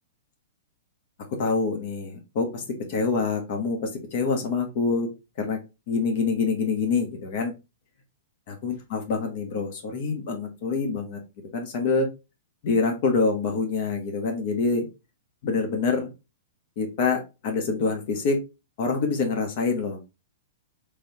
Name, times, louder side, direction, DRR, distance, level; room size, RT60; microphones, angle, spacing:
voice 1, 1.3-5.1 5.4-5.6 5.9-7.5 8.5-11.2 11.5-12.1 12.6-14.9 15.4-16.1 16.8-18.4 18.8-20.0, left 4 dB, 55° left, 4 dB, 1.0 m, -26 dB
3.3 x 3.2 x 2.8 m, 0.27 s
hypercardioid pair, 125°, 0 cm